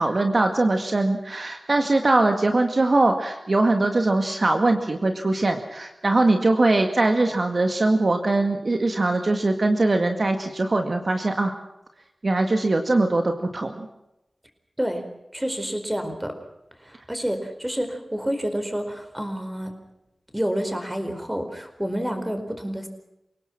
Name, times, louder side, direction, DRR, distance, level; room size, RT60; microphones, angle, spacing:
voice 1, 0.0-11.5 12.2-13.9, right 2 dB, 50° right, 5 dB, 2.0 m, -21 dB
voice 2, 15.3-16.4 16.8-19.7 20.3-22.9, equal, 10° right, 7 dB, 4.7 m, -28 dB
29.0 x 18.5 x 6.0 m, 0.89 s
wide cardioid pair, 70°, 0 cm